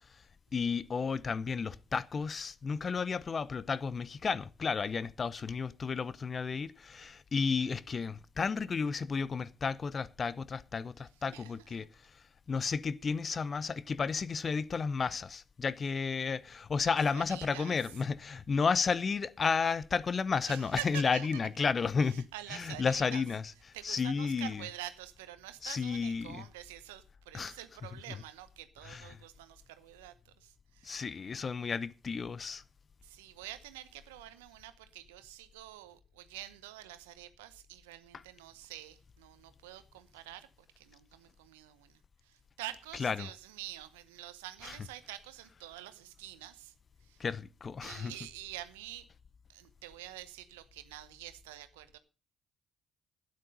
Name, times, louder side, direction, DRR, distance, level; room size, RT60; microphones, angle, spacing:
voice 1, 0.5-11.9 12.5-23.4 23.8-24.6 25.6-26.4 27.3-27.5 28.8-29.1 30.8-32.6 43.0-43.3 44.6-44.8 47.2-48.1, left 5 dB, 45° left, 0.8 m, -32 dB
voice 2, 11.0-11.9 16.9-17.7 20.5-21.4 22.0-23.2 23.7-31.0 33.0-40.5 40.8-46.7 47.0-47.2 47.8-49.1 49.5-52.0, right 14 dB, 85° right, 0.9 m, -47 dB
12.5 x 9.7 x 5.4 m
hypercardioid pair, 45°, 0 cm